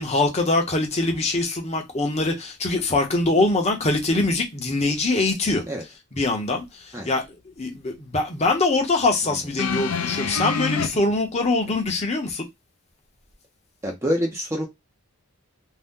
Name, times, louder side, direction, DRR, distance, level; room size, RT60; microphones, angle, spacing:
voice 1, 0.0-5.6 6.1-7.2 7.6-12.4, left 2 dB, 30° left, 0.8 m, -23 dB
sound 1, 9.6-10.9 11.9-12.0, left 5 dB, 85° left, 0.5 m, -26 dB
voice 2, 13.8-14.7, equal, 15° right, 0.6 m, -26 dB
2.7 x 2.2 x 3.6 m
head